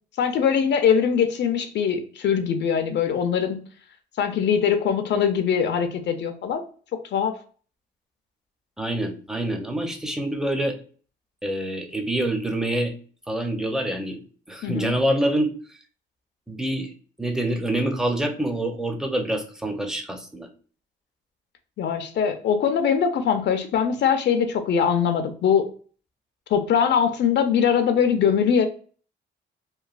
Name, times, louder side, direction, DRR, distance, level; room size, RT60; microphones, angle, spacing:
voice 1, 0.2-3.6 4.2-6.6 7.1-7.3 14.6-14.9 21.8-25.7 26.5-28.7, left 7 dB, 60° left, 7 dB, 0.5 m, -22 dB
voice 2, 8.8-10.8 11.4-12.9 13.3-14.2 14.5-15.5 16.5-16.9 17.2-20.5, right 1 dB, 5° right, 4 dB, 0.6 m, -26 dB
3.1 x 2.2 x 2.3 m, 0.42 s
cardioid pair, 90°, 20 cm